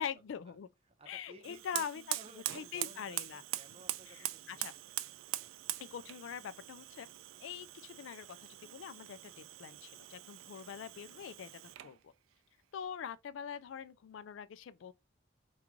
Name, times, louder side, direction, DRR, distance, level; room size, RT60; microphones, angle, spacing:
voice 1, 0.0-0.7 1.1-2.2 2.5-3.4 4.1-4.7 5.8-7.1 7.4-12.1 12.7-14.9, left 8 dB, 70° left, 0.3 m, -44 dB
voice 2, 0.9-4.8 5.3-5.5, right 1 dB, 30° right, 0.7 m, -58 dB
Fire, 1.4-12.0, right 15 dB, 85° right, 0.3 m, -43 dB
3.1 x 2.3 x 3.6 m
head